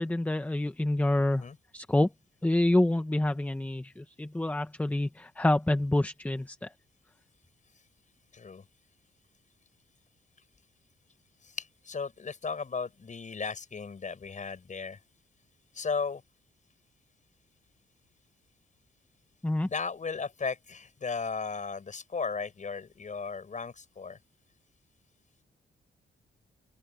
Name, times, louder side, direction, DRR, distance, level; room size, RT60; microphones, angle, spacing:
voice 1, 0.0-1.4 1.7-2.1 2.4-6.7 19.4-19.7, left 1 dB, 10° left, 0.9 m, -27 dB
voice 2, 8.3-8.6 11.4-15.0 15.7-16.2 19.6-24.2, left 5 dB, 40° left, 7.1 m, -35 dB
open air
cardioid pair, 110°, 20 cm